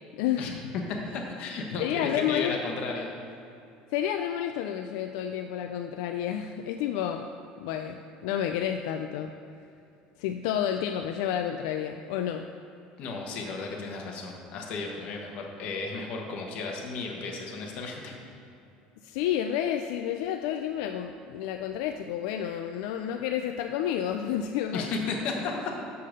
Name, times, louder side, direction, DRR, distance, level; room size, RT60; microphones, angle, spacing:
voice 1, 0.1-0.5 1.8-2.5 3.9-7.3 7.6-9.3 10.2-12.5 19.0-24.9, left 10 dB, 80° left, 6 dB, 0.4 m, -30 dB
voice 2, 1.0-3.1 13.0-18.1 24.7-25.7, left 3 dB, 50° left, 0 dB, 1.3 m, -34 dB
6.8 x 5.6 x 6.5 m, 2.7 s
cardioid pair, 160°, 3 cm